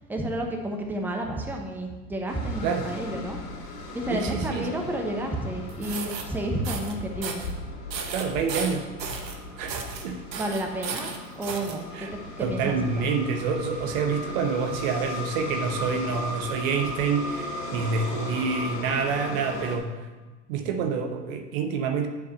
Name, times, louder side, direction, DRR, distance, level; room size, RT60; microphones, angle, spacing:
voice 1, 0.1-3.4 3.9-7.4 10.4-13.1, right 1 dB, 5° right, 1 dB, 1.0 m, -31 dB
sound 1, 2.3-19.8, left 2 dB, 70° left, 2.2 m, -37 dB
voice 2, 4.1-4.8 8.1-8.9 9.6-10.2 11.9-12.1 12.4-20.1 20.5-22.1, right 5 dB, 55° right, 6 dB, 1.0 m, -27 dB
sound 2, 5.7-6.2 6.6-6.9 7.2-7.5 7.9-9.4 9.7-10.0 10.3-11.7, right 5 dB, 80° right, 1.2 m, -34 dB
7.9 x 4.7 x 6.5 m, 1.2 s
hypercardioid pair, 90°, 49 cm